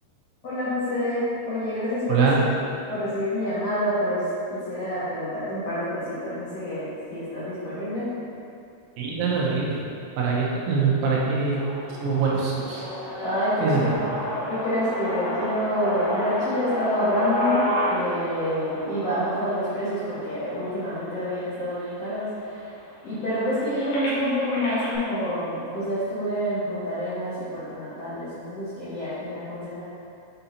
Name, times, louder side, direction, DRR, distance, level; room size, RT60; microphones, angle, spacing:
voice 1, 0.4-2.3 2.9-4.2 4.5-8.1 13.2-13.9 14.5-22.6 23.0-29.8, equal, 80° left, -14 dB, 1.4 m, -27 dB
voice 2, 9.0-9.8 10.2-11.6 12.0-12.8 13.2-13.3 13.6-13.8, right 5 dB, 85° right, -4 dB, 3.3 m, -23 dB
sound 1, 11.5-21.5 22.1-22.2 22.5-25.0, equal, 60° left, 2.9 m, -31 dB
8.7 x 4.2 x 2.7 m, 2.6 s
omnidirectional pair, 5.4 m